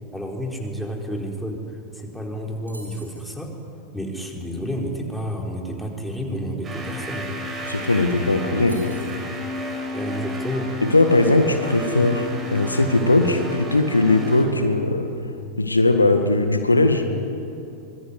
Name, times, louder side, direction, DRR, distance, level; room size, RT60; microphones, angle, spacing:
voice 1, 0.1-3.5 3.9-7.4 9.9-10.7, equal, ahead, 0 dB, 4.4 m, -30 dB
sound 1, 2.7-3.3 7.3-7.4 7.6-7.9 8.7-9.3, right 1 dB, 85° right, 3.8 m, -44 dB
sound 2, 6.6-14.4, left 2 dB, 25° right, 6.0 m, -32 dB
voice 2, 7.7-8.9 10.8-15.1 15.6-17.0, left 2 dB, 80° left, 7 dB, 1.8 m, -19 dB
25.0 x 22.5 x 9.9 m, 2.8 s
figure-of-eight pair, 90°, 0 cm